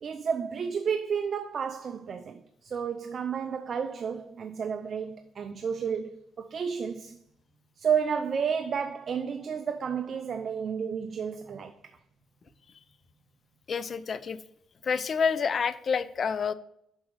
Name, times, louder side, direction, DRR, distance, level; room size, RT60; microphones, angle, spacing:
voice 1, 0.0-6.1 6.4-7.2 7.8-11.7, right 7 dB, 50° right, 0.5 m, -31 dB
voice 2, 13.7-14.4 14.8-16.5, left 6 dB, 50° left, 0.5 m, -28 dB
6.0 x 5.5 x 4.7 m
cardioid pair, 90°, 0 cm